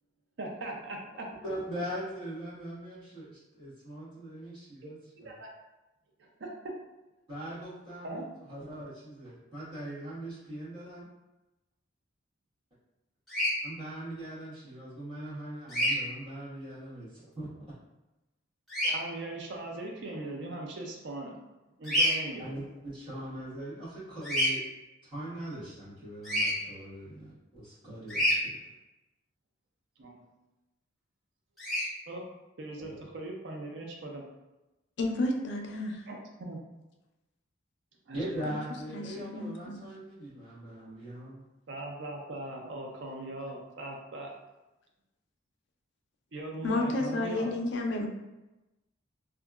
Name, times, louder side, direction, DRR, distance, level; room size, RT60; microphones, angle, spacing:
voice 1, 0.4-1.3 5.2-5.5 6.4-6.5 8.0-8.2 18.8-21.4 21.8-22.5 30.0-30.2 32.1-32.2 32.6-34.2 36.1-36.6 38.1-38.5 41.7-44.3 46.3-47.5, right 2 dB, 60° right, 0 dB, 0.4 m, -40 dB
voice 2, 1.4-5.3 7.3-11.1 13.6-17.5 22.4-24.6 25.0-28.6 32.8-33.0 38.1-41.5, right 1 dB, 25° right, -12 dB, 1.4 m, -41 dB
Bird vocalization bird call bird song, 13.3-13.5 15.7-15.9 18.7-18.9 21.8-22.2 24.2-24.5 26.2-26.5 28.1-28.4 31.6-31.9, equal, ahead, 0.8 m, -27 dB
voice 3, 35.0-36.0 38.9-39.0 39.3-39.8 46.6-48.1, left 2 dB, 55° left, 2 dB, 0.4 m, -31 dB
2.7 x 2.4 x 2.3 m, 1.0 s
head